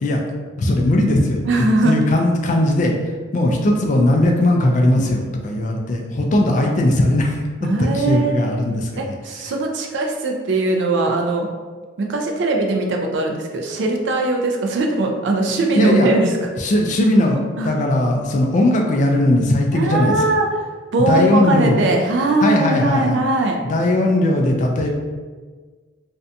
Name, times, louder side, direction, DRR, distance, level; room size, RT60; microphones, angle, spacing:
voice 1, 0.6-2.9 3.3-9.1 15.8-16.1 16.6-20.2 21.1-21.8 22.4-23.2 23.6-24.9, left 1 dB, 40° left, 1 dB, 0.3 m, -18 dB
voice 2, 1.5-2.0 7.6-8.3 9.0-11.5 12.0-16.3 17.4-17.7 19.7-20.5 20.9-23.6, right 2 dB, 65° right, 2 dB, 0.3 m, -20 dB
2.6 x 2.2 x 2.6 m, 1.5 s
head